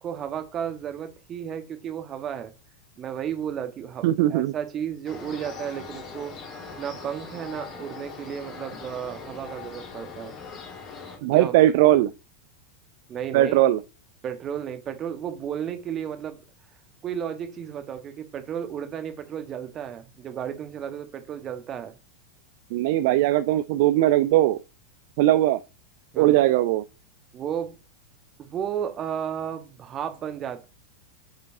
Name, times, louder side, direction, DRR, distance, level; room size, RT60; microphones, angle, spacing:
voice 1, 0.0-2.5 3.0-10.4 11.3-11.5 11.9-12.0 13.1-13.6 14.2-16.4 17.0-22.0 26.1-26.4 27.3-27.8 28.4-30.7, right 9 dB, 30° right, 1.2 m, -33 dB
voice 2, 4.0-4.5 11.2-12.1 13.3-13.8 22.7-24.6 25.2-25.6 26.2-26.8, right 14 dB, 50° right, 0.3 m, -19 dB
sound 1, 5.0-11.2, left 5 dB, 35° left, 2.0 m, -41 dB
10.5 x 5.1 x 2.6 m
figure-of-eight pair, 90°, 0 cm